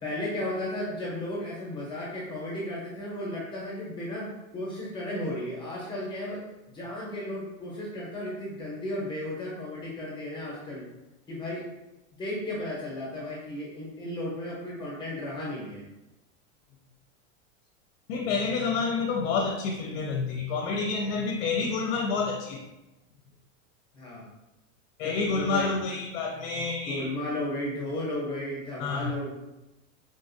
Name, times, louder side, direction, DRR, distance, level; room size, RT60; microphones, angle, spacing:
voice 1, 0.0-10.9 11.3-11.7 12.2-15.8 23.9-24.2 25.0-25.7 26.9-29.3, left 1 dB, 10° left, -5 dB, 0.7 m, -34 dB
voice 2, 18.1-22.6 25.0-27.1 28.8-29.1, left 4 dB, 55° left, 1 dB, 0.5 m, -28 dB
3.8 x 2.5 x 2.6 m, 0.98 s
supercardioid pair, 155°, 39 cm